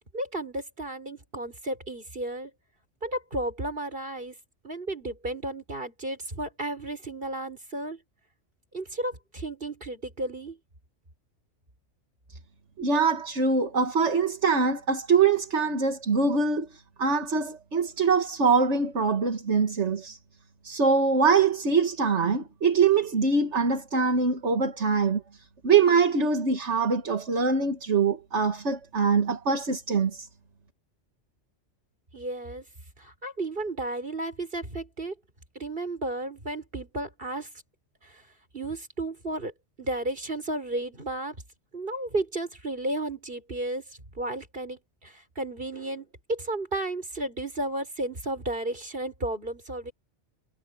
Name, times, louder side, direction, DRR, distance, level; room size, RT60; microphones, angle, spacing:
voice 1, 0.1-2.5 3.0-4.3 4.6-8.0 8.7-10.6 32.1-32.6 33.0-35.1 35.6-37.5 38.5-39.5 39.8-41.4 41.7-43.8 44.2-44.8 45.4-49.9, right 2 dB, 50° right, 5.4 m, -33 dB
voice 2, 12.8-20.2 20.6-25.2 25.6-30.3, right 5 dB, 70° right, 2.0 m, -23 dB
omnidirectional pair, 1.2 m